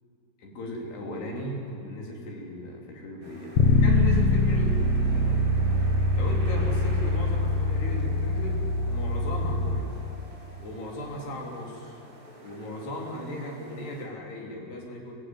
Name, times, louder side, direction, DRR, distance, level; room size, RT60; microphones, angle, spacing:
voice 1, 0.4-4.8 5.1-5.6 6.1-9.9 10.6-12.0 12.4-15.1, left 1 dB, 85° left, 0 dB, 5.8 m, -37 dB
sound 1, 3.2-14.1, right 1 dB, 30° right, 6.1 m, -46 dB
Bass guitar, 3.6-9.8, left 2 dB, 60° left, 2.0 m, -23 dB
22.0 x 21.0 x 9.6 m, 2.5 s
omnidirectional pair, 4.6 m